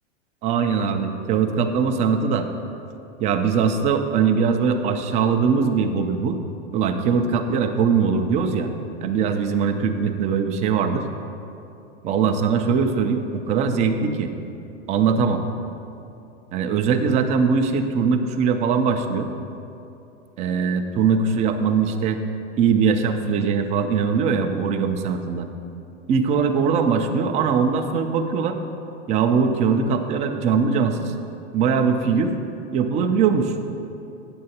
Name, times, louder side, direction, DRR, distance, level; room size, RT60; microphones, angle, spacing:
voice 1, 0.4-2.5 3.2-6.4 6.7-8.7 9.0-11.0 12.0-14.3 14.9-15.4 16.5-19.3 20.4-22.2 22.6-25.5 26.1-28.6 29.1-31.1 31.5-32.3 32.7-33.5, right 6 dB, 20° right, 6 dB, 0.3 m, -21 dB
8.7 x 7.7 x 2.8 m, 2.8 s
hypercardioid pair, 105°, 37 cm